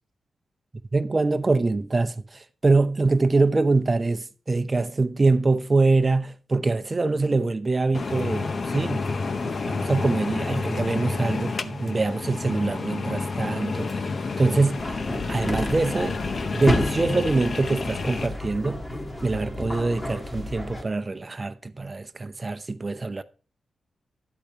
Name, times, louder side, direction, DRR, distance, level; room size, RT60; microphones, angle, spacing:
voice 1, 0.9-9.0 9.4-14.1 14.4-14.9 15.3-16.2 16.5-18.8 19.2-23.2, right 3 dB, 25° right, 0.7 m, -24 dB
sound 1, 7.9-18.3, left 4 dB, 50° left, 0.7 m, -30 dB
sound 2, 14.8-20.8, left 1 dB, 25° left, 1.7 m, -31 dB
12.0 x 8.4 x 2.9 m
wide cardioid pair, 115°, 0 cm